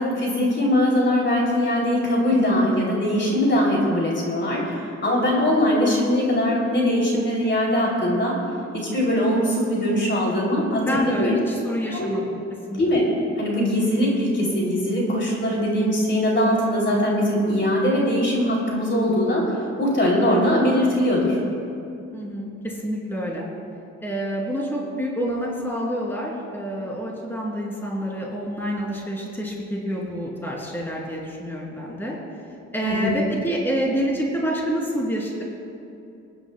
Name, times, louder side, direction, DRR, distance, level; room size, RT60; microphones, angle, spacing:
voice 1, 0.0-8.4 8.7-11.4 11.9-12.2 12.7-13.0 13.4-19.5 19.8-21.4 32.8-33.2, left 1 dB, 40° left, -3 dB, 2.9 m, -21 dB
voice 2, 10.8-12.4 12.7-13.0 22.1-23.5 24.0-32.2 32.7-35.4, equal, 5° left, -3 dB, 2.8 m, -27 dB
26.5 x 10.0 x 2.2 m, 2.6 s
cardioid pair, 90°, 30 cm